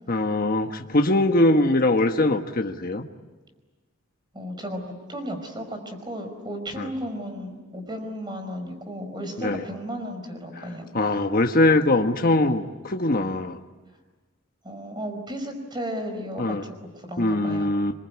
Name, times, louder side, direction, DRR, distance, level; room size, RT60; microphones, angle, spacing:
voice 1, 0.1-3.1 6.8-6.9 9.4-9.6 10.9-13.6 16.4-16.6 17.2-17.9, left 2 dB, 45° left, 4 dB, 1.3 m, -22 dB
voice 2, 4.3-10.9 14.6-17.7, equal, 20° right, 6 dB, 4.9 m, -34 dB
27.0 x 23.0 x 9.7 m, 1.2 s
head